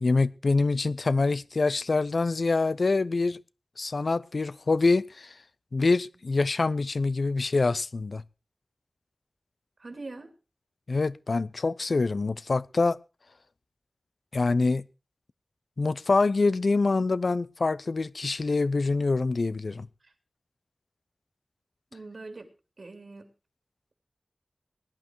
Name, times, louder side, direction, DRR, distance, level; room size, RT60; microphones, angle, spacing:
voice 1, 0.0-3.4 3.8-5.4 5.7-8.2 10.9-13.0 14.3-14.8 15.8-19.9, left 3 dB, 70° left, 0.7 m, -25 dB
voice 2, 9.8-10.3 20.0-20.1 21.9-22.5 22.8-23.3, right 3 dB, 65° right, 3.2 m, -42 dB
20.0 x 11.5 x 4.6 m
wide cardioid pair, 75°, 0 cm